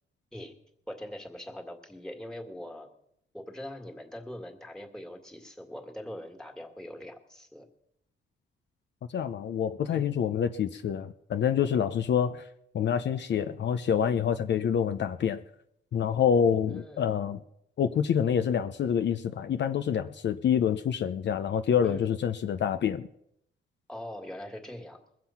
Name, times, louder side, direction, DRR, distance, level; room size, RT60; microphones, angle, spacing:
voice 1, 0.9-2.9 3.3-7.7 9.9-10.1 16.7-17.1 21.8-22.1 23.9-25.0, left 1 dB, 5° left, 3 dB, 2.0 m, -42 dB
voice 2, 9.1-12.4 12.7-15.4 15.9-17.4 17.8-23.1, left 8 dB, 60° left, 10 dB, 0.7 m, -27 dB
22.0 x 7.6 x 5.8 m, 0.76 s
cardioid pair, 125°, 21 cm